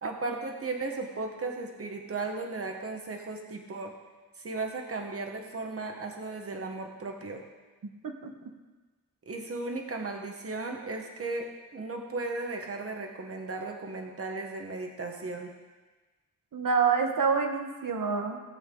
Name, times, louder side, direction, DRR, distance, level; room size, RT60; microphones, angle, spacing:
voice 1, 0.0-3.9 4.4-7.4 9.3-15.5, right 3 dB, 45° right, 2 dB, 1.3 m, -36 dB
voice 2, 16.5-18.4, right 5 dB, 80° right, 4 dB, 1.3 m, -27 dB
15.5 x 8.0 x 3.8 m, 1.3 s
wide cardioid pair, 125°, 32 cm